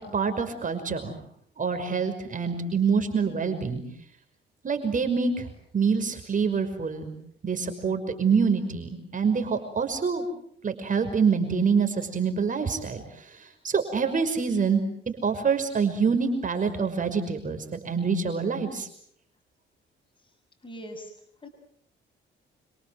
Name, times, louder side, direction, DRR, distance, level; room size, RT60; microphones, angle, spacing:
voice 1, 0.1-1.1 1.6-3.8 4.6-5.5 5.7-7.1 7.4-10.3 10.6-13.0 13.6-18.9, right 5 dB, 40° right, 7 dB, 5.8 m, -26 dB
voice 2, 20.6-21.1 21.4-21.5, equal, 25° left, 5 dB, 6.7 m, -40 dB
28.5 x 25.5 x 7.9 m, 0.68 s
cardioid pair, 90°, 20 cm